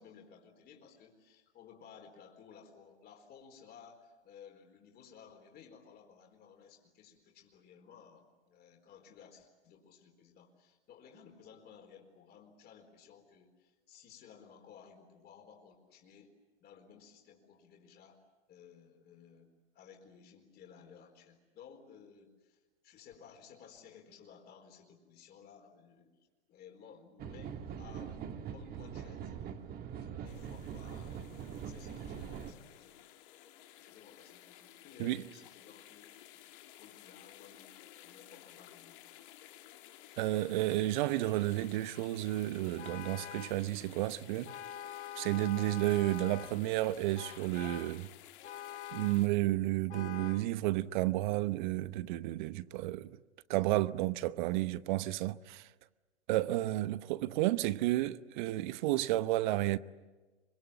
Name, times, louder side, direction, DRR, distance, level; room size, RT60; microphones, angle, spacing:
voice 1, 0.0-16.3 16.6-18.2 18.5-26.1 26.5-29.5 30.0-31.2 31.6-33.3 33.8-36.1 36.8-39.2 56.7-56.9, left 7 dB, 30° left, 4.3 m, -57 dB
sound 1, 27.2-32.5, right 8 dB, 25° right, 1.7 m, -43 dB
sound 2, 30.2-49.3, left 13 dB, 50° left, 2.0 m, -55 dB
voice 2, 40.2-44.5 45.2-48.1 48.9-53.2 53.5-55.7 56.3-59.8, right 16 dB, 45° right, 0.9 m, -32 dB
Vehicle horn car horn honking, 42.8-43.7 44.5-46.6 47.2-48.0 48.4-49.3 49.9-50.5, left 11 dB, 75° left, 0.9 m, -45 dB
25.5 x 24.5 x 8.8 m
figure-of-eight pair, 110°, 34 cm